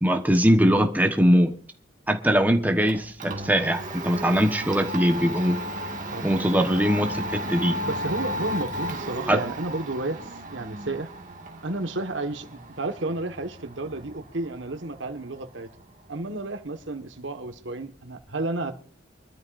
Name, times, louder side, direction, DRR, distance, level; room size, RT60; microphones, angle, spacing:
voice 1, 0.0-1.5 2.1-5.6 6.2-7.8 9.3-9.4, equal, 10° right, 1.1 m, -21 dB
Domestic sounds home sounds, 2.4-18.2, right 1 dB, 45° right, 2.0 m, -35 dB
voice 2, 7.8-11.1 11.6-15.7 16.1-18.7, right 2 dB, 85° right, 1.5 m, -32 dB
25.0 x 13.0 x 2.6 m
head